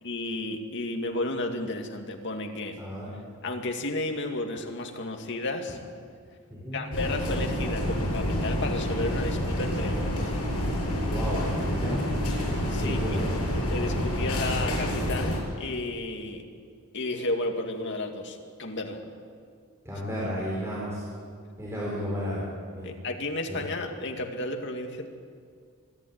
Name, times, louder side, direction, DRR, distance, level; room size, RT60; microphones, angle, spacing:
voice 1, 0.0-2.7 3.4-5.8 6.7-10.4 12.7-13.0 13.7-16.4 16.9-19.0 22.8-25.1, left 2 dB, 55° left, 3 dB, 2.2 m, -32 dB
voice 2, 2.8-3.1 6.5-6.8 11.1-12.0 12.8-13.4 19.8-21.0 21.6-22.5 22.8-22.9 23.5-23.6, equal, 10° right, -6 dB, 4.3 m, -33 dB
sound 1, 6.9-15.4, equal, 80° left, 7.3 m, -28 dB
25.0 x 12.0 x 9.5 m, 2.1 s
head